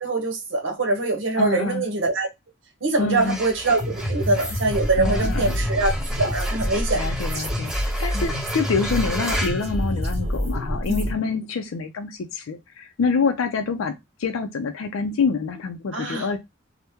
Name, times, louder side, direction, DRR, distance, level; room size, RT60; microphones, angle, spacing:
voice 1, 0.0-2.3 2.8-5.9 6.2-7.0 8.1-8.2 10.9-11.0 15.9-16.3, right 2 dB, 70° right, 0.8 m, -23 dB
voice 2, 1.4-1.9 3.0-3.4 5.0-5.6 7.0-13.9 14.2-16.4, left 4 dB, 90° left, 0.4 m, -26 dB
sound 1, 3.0-10.5, right 1 dB, 5° right, 0.4 m, -35 dB
sound 2, 3.8-11.1, equal, 30° right, 1.0 m, -27 dB
2.8 x 2.1 x 3.4 m
head